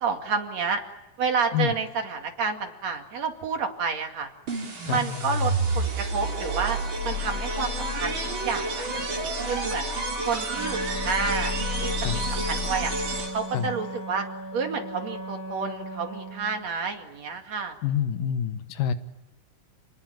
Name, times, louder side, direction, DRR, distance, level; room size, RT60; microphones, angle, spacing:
voice 1, 0.0-0.8 1.2-4.3 4.9-6.8 7.0-9.9 10.3-12.9 13.3-14.3 14.5-17.8, right 5 dB, 55° right, 5 dB, 3.3 m, -30 dB
sound 1, 4.5-13.6, right 1 dB, 35° right, 4.1 m, -29 dB
Wind instrument woodwind instrument, 10.5-16.6, right 2 dB, 5° right, 2.9 m, -37 dB
voice 2, 17.8-18.9, left 9 dB, 80° left, 11 dB, 2.8 m, -26 dB
29.5 x 20.0 x 9.0 m, 1.0 s
omnidirectional pair, 3.8 m